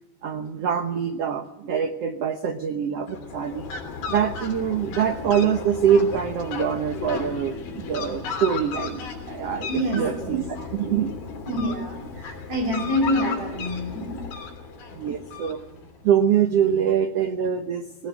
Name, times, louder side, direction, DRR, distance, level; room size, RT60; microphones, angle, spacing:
voice 1, 0.2-3.7 4.1-11.1 14.9-15.6 16.0-18.1, right 8 dB, 80° right, 7 dB, 1.4 m, -24 dB
Fowl, 3.0-16.0, left 5 dB, 75° left, 5.1 m, -35 dB
voice 2, 9.7-10.4 11.5-14.2, equal, 50° right, 5 dB, 6.7 m, -27 dB
19.5 x 18.0 x 9.1 m, 0.95 s
omnidirectional pair, 4.3 m